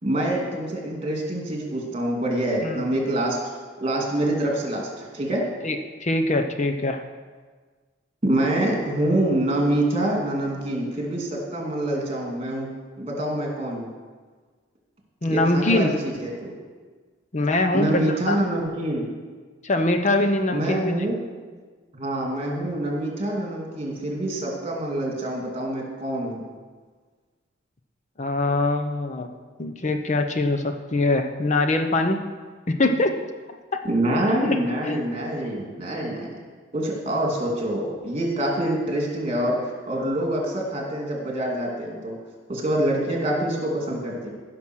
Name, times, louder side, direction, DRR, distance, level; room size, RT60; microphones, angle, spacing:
voice 1, 0.0-3.4 3.8-5.4 8.2-12.7 13.0-13.9 15.3-16.5 17.7-19.0 20.5-21.1 21.9-26.4 33.8-36.4 36.7-42.2 42.5-44.3, right 1 dB, 30° right, -1 dB, 2.6 m, -26 dB
voice 2, 5.6-7.0 15.2-15.9 17.3-18.4 19.6-21.0 28.2-29.3 29.6-32.2 32.8-33.1 33.7-33.8 34.8-35.0, left 2 dB, 40° left, 6 dB, 0.7 m, -23 dB
15.5 x 6.0 x 6.2 m, 1.4 s
head